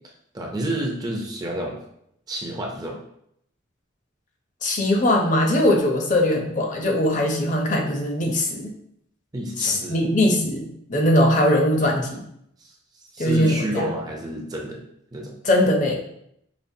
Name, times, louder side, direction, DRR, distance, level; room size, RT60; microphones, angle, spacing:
voice 1, 0.3-1.8 2.3-3.0 9.3-10.1 12.6-12.7 13.1-14.8 15.1-15.3, right 1 dB, 20° right, 0 dB, 0.4 m, -29 dB
voice 2, 4.6-8.7 9.6-12.2 13.2-13.9 15.4-16.0, left 1 dB, 40° left, 2 dB, 0.6 m, -21 dB
5.1 x 2.5 x 2.7 m, 0.74 s
head